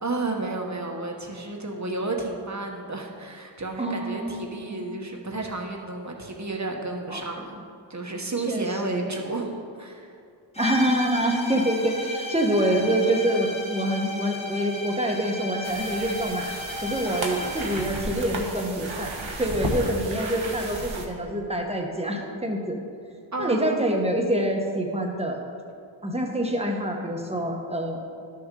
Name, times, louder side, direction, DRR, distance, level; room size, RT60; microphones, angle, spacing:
voice 1, 0.0-7.6 7.9-10.1 23.3-23.8, right 2 dB, 35° right, 1 dB, 1.1 m, -32 dB
voice 2, 3.8-4.9 7.1-7.2 8.5-9.1 10.6-16.5 16.8-19.1 19.4-22.8 23.4-25.4 26.0-28.1, right 1 dB, 15° right, 1 dB, 1.1 m, -26 dB
sound 1, 10.5-18.0, left 1 dB, 15° left, 1.0 m, -34 dB
sound 2, 15.6-21.1, right 2 dB, 80° right, 1.1 m, -33 dB
12.0 x 6.3 x 3.8 m, 2.3 s
wide cardioid pair, 60°, 47 cm